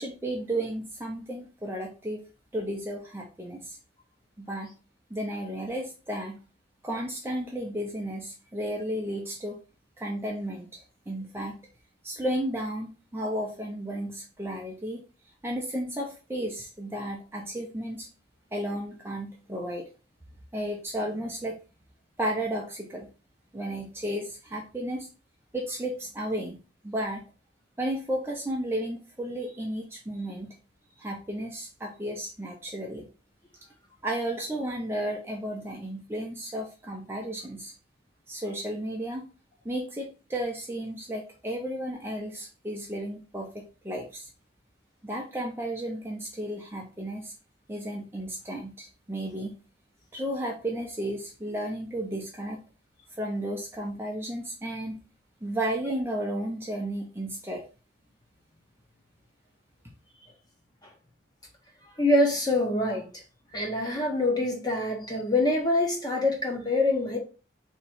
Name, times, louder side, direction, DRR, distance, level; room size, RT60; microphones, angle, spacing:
voice 1, 0.0-2.2 2.5-3.8 4.4-4.7 5.1-6.4 6.8-9.6 10.0-11.6 12.0-15.0 15.4-18.1 18.5-19.9 20.5-21.6 22.2-23.1 23.5-25.1 25.5-26.6 26.8-27.2 27.8-30.5 31.0-33.1 34.0-37.7 38.3-39.2 39.6-44.3 45.0-47.3 47.7-49.5 50.1-52.6 53.2-55.0 55.4-57.6, right 1 dB, 10° right, 0.6 m, -33 dB
voice 2, 62.0-63.1 63.5-67.2, left 2 dB, 20° left, 1.0 m, -25 dB
3.6 x 3.1 x 4.3 m
head